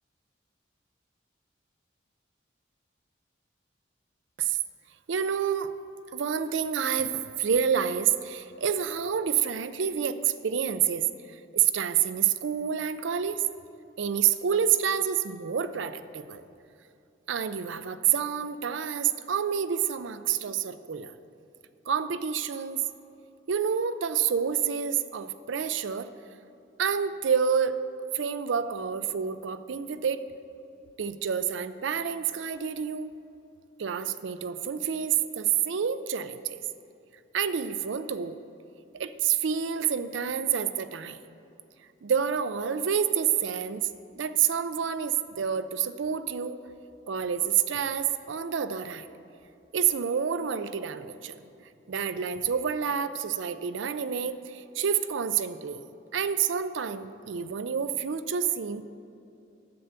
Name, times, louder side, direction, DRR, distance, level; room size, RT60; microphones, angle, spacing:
voice 1, 5.1-5.7 6.1-11.1 11.5-13.4 14.0-16.4 17.3-21.1 21.9-22.8 23.5-26.1 26.8-27.8 28.1-30.2 31.0-33.1 33.8-36.6 37.3-38.4 38.9-41.2 42.0-43.8 44.2-46.6 47.1-49.1 49.7-51.3 51.9-55.8 56.1-58.8, right 8 dB, 75° right, 12 dB, 0.4 m, -28 dB
7.7 x 6.8 x 7.9 m, 2.7 s
head